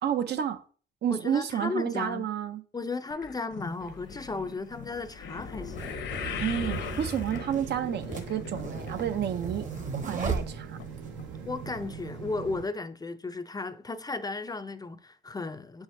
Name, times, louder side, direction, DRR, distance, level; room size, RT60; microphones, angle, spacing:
voice 1, 0.0-0.6 1.0-2.6 6.4-9.7 9.9-10.8, right 9 dB, 60° right, 0.6 m, -30 dB
voice 2, 1.1-2.3 2.7-6.0 11.4-15.8, left 3 dB, 20° left, 0.4 m, -35 dB
sound 1, 3.1-9.5 9.8-10.2 10.8-10.9 11.2-11.3, left 7 dB, 70° left, 0.8 m, -39 dB
sound 2, 3.7-3.8 4.7-11.1, right 4 dB, 40° right, 1.2 m, -37 dB
sound 3, 7.3-12.6, right 6 dB, 80° right, 1.1 m, -41 dB
7.3 x 4.9 x 2.6 m
cardioid pair, 90°, 20 cm